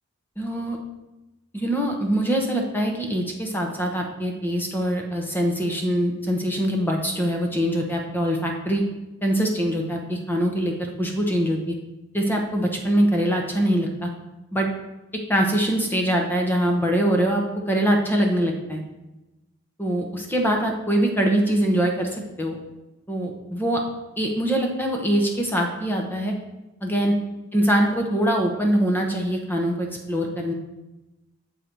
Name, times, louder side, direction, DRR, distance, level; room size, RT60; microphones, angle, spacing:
voice 1, 0.4-0.8 1.5-8.8 9.2-11.7 12.1-14.1 14.5-14.7 15.3-18.8 19.8-22.6 23.1-23.8 24.2-26.3 26.8-27.1 27.5-30.5, right 1 dB, 10° left, 1 dB, 0.8 m, -23 dB
7.9 x 3.9 x 4.5 m, 1.0 s
head